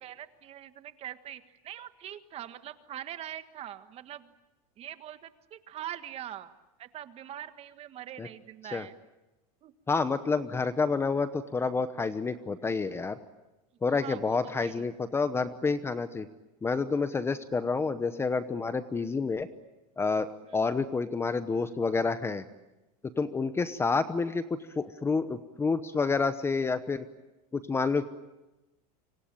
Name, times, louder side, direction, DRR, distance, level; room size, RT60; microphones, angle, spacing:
voice 1, 0.0-4.3 4.8-6.5 6.8-8.9 9.6-9.7 13.9-14.8 20.5-20.7, right 11 dB, 30° right, 11 dB, 1.6 m, -43 dB
voice 2, 9.9-13.2 13.8-16.3 16.6-19.5 20.0-22.4 23.2-24.4 24.8-27.0 27.5-28.1, left 4 dB, 15° left, 12 dB, 0.9 m, -29 dB
26.5 x 25.0 x 8.9 m, 1.0 s
supercardioid pair, 145°, 19 cm